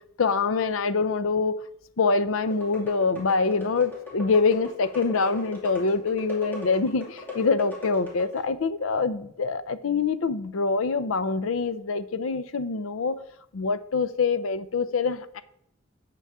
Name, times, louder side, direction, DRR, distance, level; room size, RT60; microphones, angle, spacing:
voice 1, 0.2-1.5 2.0-13.2 13.5-15.4, left 4 dB, 85° left, 13 dB, 0.6 m, -25 dB
sound 1, 2.4-8.5, left 4 dB, 10° left, 2.4 m, -39 dB
8.3 x 6.8 x 3.6 m, 0.72 s
head